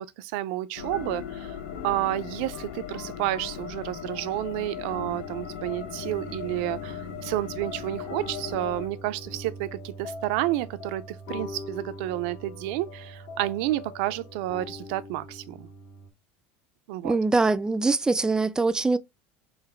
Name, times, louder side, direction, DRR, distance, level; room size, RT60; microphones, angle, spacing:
voice 1, 0.0-1.6 1.8-15.7 16.9-17.1, right 15 dB, 70° right, 0.5 m, -30 dB
sound 1, 0.8-8.9, left 9 dB, 80° left, 0.7 m, -38 dB
sound 2, 0.8-16.1, left 2 dB, 55° left, 1.5 m, -42 dB
voice 2, 17.0-19.0, right 3 dB, 10° right, 0.4 m, -23 dB
3.9 x 2.6 x 4.4 m
supercardioid pair, 105°, 6 cm